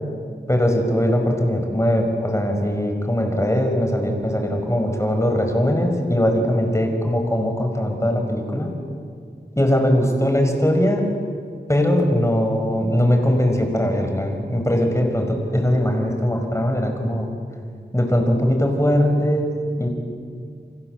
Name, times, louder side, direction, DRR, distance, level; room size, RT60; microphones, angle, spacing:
voice 1, 0.5-8.7 9.5-11.1 11.7-17.3 17.9-19.9, equal, 15° left, 3 dB, 5.4 m, -20 dB
30.0 x 25.0 x 8.0 m, 2.2 s
wide cardioid pair, 60°, 18 cm